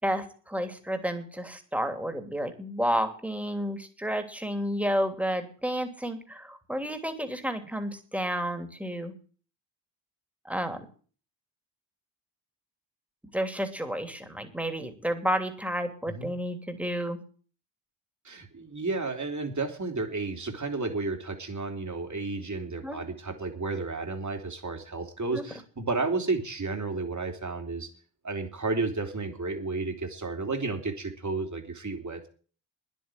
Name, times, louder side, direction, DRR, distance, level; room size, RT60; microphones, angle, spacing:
voice 1, 0.0-9.1 10.4-10.8 13.3-17.2 22.8-23.0 25.3-25.5, equal, 5° right, 7 dB, 3.0 m, -31 dB
voice 2, 18.2-27.9 28.2-32.3, right 3 dB, 35° right, 5 dB, 3.1 m, -32 dB
10.0 x 8.3 x 9.8 m, 0.41 s
supercardioid pair, 50°, 49 cm